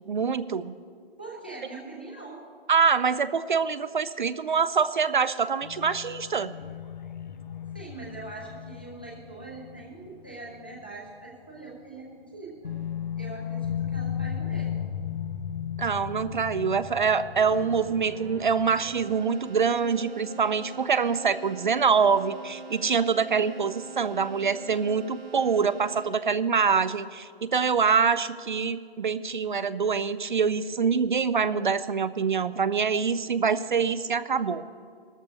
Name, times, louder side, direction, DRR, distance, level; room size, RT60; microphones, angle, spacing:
voice 1, 0.1-0.7 2.7-6.5 15.8-34.6, right 6 dB, 55° right, 14 dB, 0.4 m, -25 dB
voice 2, 1.2-2.4 7.7-12.8 13.2-14.8, right 3 dB, 10° left, -3 dB, 0.5 m, -42 dB
sound 1, 5.6-11.0 11.3-11.4 12.6-19.2, left 8 dB, 50° left, 0.7 m, -36 dB
Keyboard (musical), 17.5-26.5, right 5 dB, 80° right, 1.6 m, -44 dB
18.5 x 13.0 x 2.8 m, 2.1 s
hypercardioid pair, 175°, 31 cm